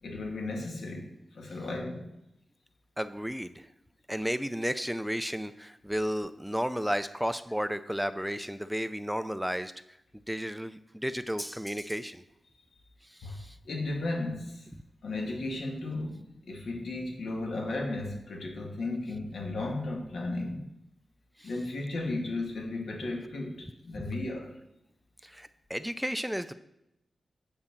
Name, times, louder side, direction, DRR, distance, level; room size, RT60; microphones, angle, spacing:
voice 1, 0.0-2.1 13.2-14.7 15.0-20.6 21.4-24.6, left 2 dB, 85° left, 2.0 m, -35 dB
voice 2, 3.0-3.7 4.1-9.7 10.3-12.2 13.1-13.6 21.4-21.5 23.9-24.0 25.2-26.5, equal, ahead, 0.4 m, -33 dB
8.8 x 4.2 x 7.2 m
wide cardioid pair, 135°, 0 cm